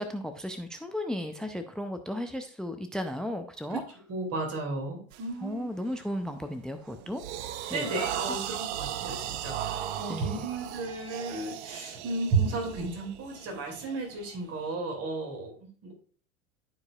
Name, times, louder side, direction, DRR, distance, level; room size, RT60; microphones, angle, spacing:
voice 1, 0.0-3.8 5.4-7.2 7.7-7.9 10.1-10.5, left 1 dB, ahead, 9 dB, 0.5 m, -35 dB
voice 2, 4.1-5.7 7.7-15.9, right 3 dB, 40° right, 2 dB, 2.7 m, -33 dB
sound 1, 5.1-5.3 5.8-6.1 6.6-14.7, right 10 dB, 60° right, 0.6 m, -37 dB
12.0 x 4.8 x 2.4 m, 0.41 s
figure-of-eight pair, 85°, 38 cm